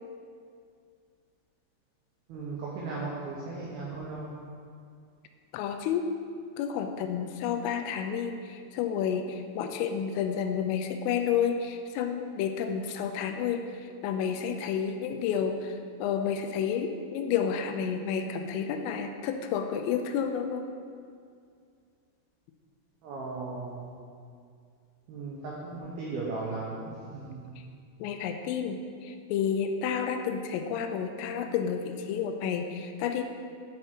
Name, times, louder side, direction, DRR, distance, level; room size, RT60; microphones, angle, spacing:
voice 1, 2.3-4.4 23.0-23.9 25.1-27.5, right 3 dB, 85° right, -4 dB, 2.1 m, -37 dB
voice 2, 5.5-6.1 6.6-13.6 14.0-15.7 16.0-20.6 28.0-33.2, left 7 dB, 90° left, 6 dB, 3.2 m, -30 dB
11.0 x 4.9 x 4.4 m, 2.3 s
omnidirectional pair, 5.7 m